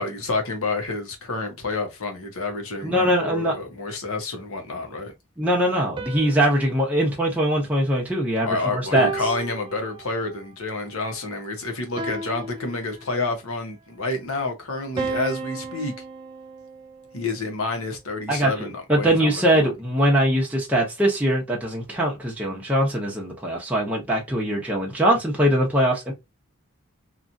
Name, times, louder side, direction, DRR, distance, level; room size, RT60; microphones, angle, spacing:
voice 1, 0.0-5.1 8.5-15.9 17.1-19.7, left 3 dB, 75° left, 1.0 m, -29 dB
voice 2, 2.8-3.5 5.4-9.1 18.3-18.5 18.9-26.1, right 1 dB, 5° right, 0.7 m, -22 dB
sound 1, 6.0-8.4 9.0-10.4 12.0-13.4 15.0-17.3, right 3 dB, 20° right, 0.3 m, -35 dB
2.9 x 2.4 x 2.5 m
head